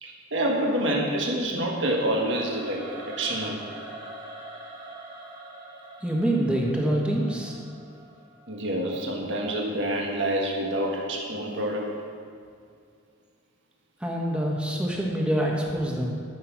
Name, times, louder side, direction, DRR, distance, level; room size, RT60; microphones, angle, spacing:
voice 1, 0.0-3.6 8.5-11.9, right 1 dB, 65° right, -1 dB, 1.6 m, -27 dB
Singing / Musical instrument, 2.0-9.1, right 2 dB, 25° right, 1.5 m, -44 dB
voice 2, 6.0-7.5 14.0-16.1, right 1 dB, 5° right, -2 dB, 1.5 m, -25 dB
13.0 x 5.8 x 6.0 m, 2.3 s
head